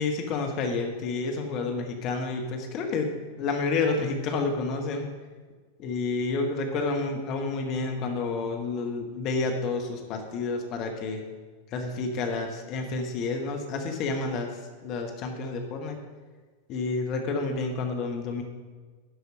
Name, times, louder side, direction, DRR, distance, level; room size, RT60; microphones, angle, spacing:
voice 1, 0.0-3.1 3.4-5.1 5.8-11.2 11.7-16.0 16.7-18.4, left 3 dB, 40° left, 3 dB, 1.2 m, -29 dB
11.5 x 4.9 x 6.5 m, 1.5 s
figure-of-eight pair, 90°, 0 cm